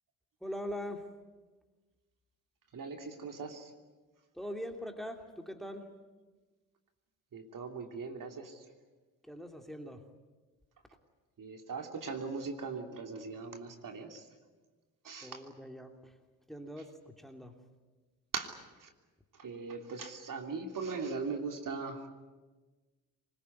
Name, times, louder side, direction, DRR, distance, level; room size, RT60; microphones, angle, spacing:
voice 1, 0.4-1.1 4.3-5.9 9.2-10.0 15.2-16.1 16.5-17.5, equal, ahead, 5 dB, 2.9 m, -42 dB
voice 2, 2.7-3.7 7.3-8.5 11.4-14.2 15.0-15.4 18.3-18.5 18.8-18.9 19.4-22.1, right 4 dB, 45° right, 4 dB, 3.2 m, -39 dB
24.0 x 21.5 x 9.6 m, 1.3 s
hypercardioid pair, 55°, 43 cm